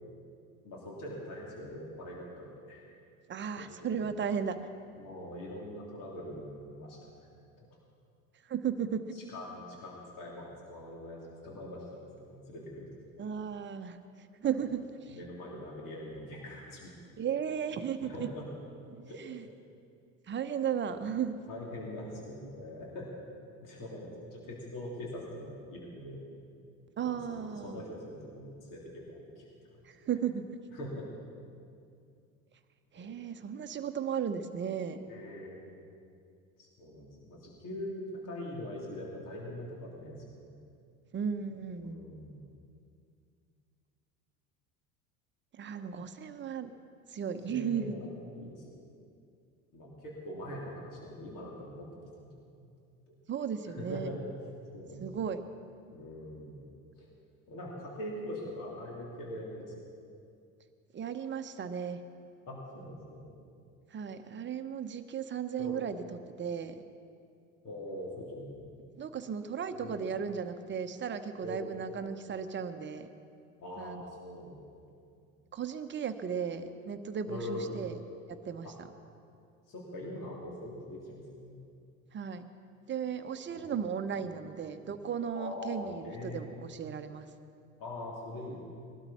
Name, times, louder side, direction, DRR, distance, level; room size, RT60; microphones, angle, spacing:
voice 1, 0.6-2.8 3.6-4.1 5.0-7.1 7.6-7.7 9.1-12.9 15.1-16.9 18.0-18.5 19.1-19.2 20.9-21.0 21.5-23.1 23.6-26.3 27.0-29.5 30.0-30.1 30.7-31.1 33.0-33.1 35.1-35.8 36.6-40.5 41.8-42.5 47.5-48.8 49.7-52.7 53.1-53.2 53.7-55.3 55.9-56.6 57.0-57.1 57.5-59.7 62.5-63.3 65.6-65.9 67.6-68.7 69.7-70.1 71.4-71.7 73.6-74.7 77.3-77.8 78.6-78.7 79.7-81.6 83.5-84.3 85.3-86.4 87.8-88.6, left 1 dB, 50° left, -3 dB, 3.4 m, -43 dB
voice 2, 3.3-4.6 8.5-9.3 13.2-14.0 14.4-15.2 17.2-18.3 18.9-19.4 20.3-21.5 27.0-27.8 29.9-30.5 32.9-35.0 41.1-42.0 45.6-46.7 47.1-48.0 53.3-54.1 55.0-55.4 60.9-62.0 63.9-66.0 66.4-66.7 69.0-73.1 73.8-74.0 75.5-78.0 78.3-78.7 82.1-82.5 82.9-87.3, right 7 dB, 30° right, 9 dB, 0.9 m, -35 dB
20.0 x 12.5 x 4.3 m, 2.4 s
hypercardioid pair, 75°, 41 cm